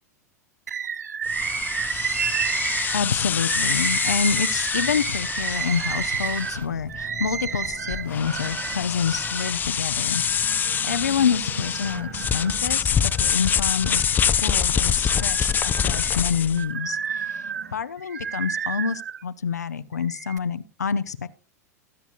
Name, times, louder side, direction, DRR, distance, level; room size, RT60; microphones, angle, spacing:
Bird, 0.7-9.6 10.1-11.1 11.6-12.6 13.1-14.5 14.9-19.2 19.9-20.4, right 7 dB, 85° right, 0.5 m, -31 dB
sound 1, 1.3-16.6, left 7 dB, 20° left, 0.5 m, -26 dB
voice 1, 2.9-10.2 10.5-21.3, left 6 dB, 85° left, 11 dB, 0.6 m, -27 dB
sound 2, 5.7-17.8, right 7 dB, 65° right, 2.1 m, -45 dB
20.5 x 8.1 x 2.5 m, 0.36 s
figure-of-eight pair, 95°, 9 cm